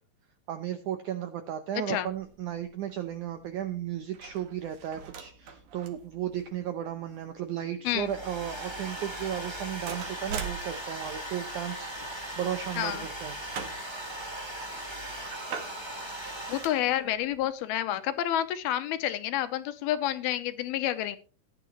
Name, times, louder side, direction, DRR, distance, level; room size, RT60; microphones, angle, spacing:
voice 1, 0.5-13.4, right 10 dB, 80° right, 9 dB, 1.8 m, -35 dB
sound 1, 2.0-17.5, right 6 dB, 55° right, 2.9 m, -46 dB
Domestic sounds home sounds, 7.8-17.1, right 1 dB, 10° right, 1.7 m, -39 dB
voice 2, 12.8-13.1 16.2-21.2, left 12 dB, 75° left, 12 dB, 2.5 m, -29 dB
17.0 x 11.0 x 3.1 m, 0.36 s
omnidirectional pair, 4.6 m